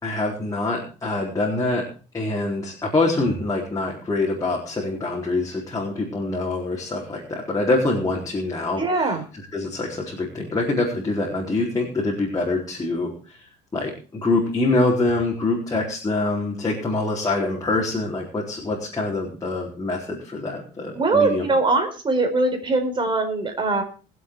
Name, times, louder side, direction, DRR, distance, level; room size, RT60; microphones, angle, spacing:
voice 1, 0.0-1.9 2.1-9.2 9.5-13.4 13.7-21.4, left 2 dB, 20° left, -3 dB, 4.2 m, -25 dB
voice 2, 8.8-9.2 21.0-23.8, right 3 dB, 30° right, 4 dB, 4.3 m, -21 dB
21.5 x 7.8 x 4.7 m, 0.37 s
cardioid pair, 110°, 17 cm